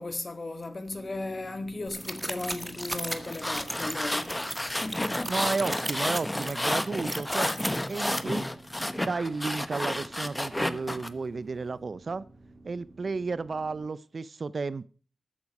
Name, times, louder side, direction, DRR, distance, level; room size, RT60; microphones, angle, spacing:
voice 1, 0.0-5.4, left 2 dB, 35° left, 1.8 m, -36 dB
sound 1, 0.9-13.9, right 1 dB, 35° right, 2.4 m, -52 dB
sound 2, 1.9-8.2, right 1 dB, 10° right, 1.5 m, -37 dB
sound 3, 3.2-11.1, left 1 dB, 10° left, 1.0 m, -31 dB
voice 2, 5.3-8.5 9.0-12.2 12.6-14.9, right 4 dB, 50° right, 0.5 m, -33 dB
13.5 x 9.5 x 5.3 m
wide cardioid pair, 85°, 0 cm